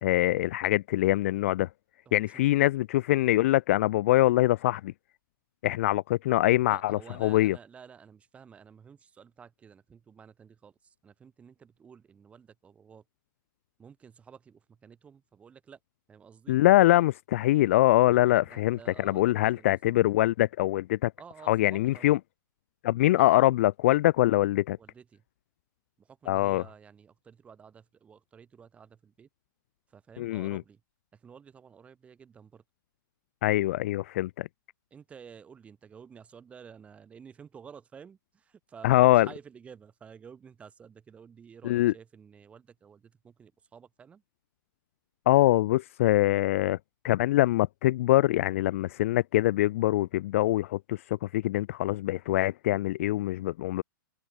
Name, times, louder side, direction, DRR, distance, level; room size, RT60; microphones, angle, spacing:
voice 1, 0.0-1.7 2.1-4.9 5.6-7.6 16.5-21.1 21.5-22.2 22.8-24.8 26.3-26.6 30.2-30.6 33.4-34.5 38.8-39.3 41.6-41.9 45.3-46.8 47.0-53.8, left 16 dB, 40° left, 0.4 m, -24 dB
voice 2, 2.1-2.5 6.7-13.0 13.8-15.8 16.1-16.6 18.4-20.1 21.2-22.2 23.0-23.5 24.8-25.2 26.0-29.3 29.9-30.8 31.1-32.6 34.9-44.2, right 7 dB, 10° right, 7.4 m, -52 dB
hypercardioid pair, 165°, 12 cm